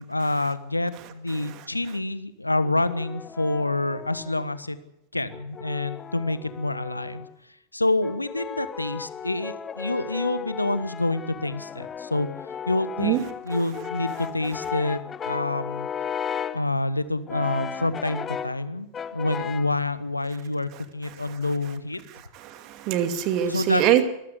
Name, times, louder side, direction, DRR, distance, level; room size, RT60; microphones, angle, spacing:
voice 1, 0.0-4.8 5.1-7.3 7.7-12.3 12.7-15.9 16.5-22.0 23.5-23.8, left 2 dB, 85° left, 15 dB, 1.3 m, -27 dB
Brass instrument, 2.6-4.6 5.3-7.3 8.0-16.7 17.3-18.6 18.9-19.8, left 7 dB, 20° left, 1.1 m, -35 dB
voice 2, 22.1-24.1, right 11 dB, 40° right, 9 dB, 2.5 m, -24 dB
24.0 x 15.0 x 8.1 m, 0.87 s
figure-of-eight pair, 90°, 0 cm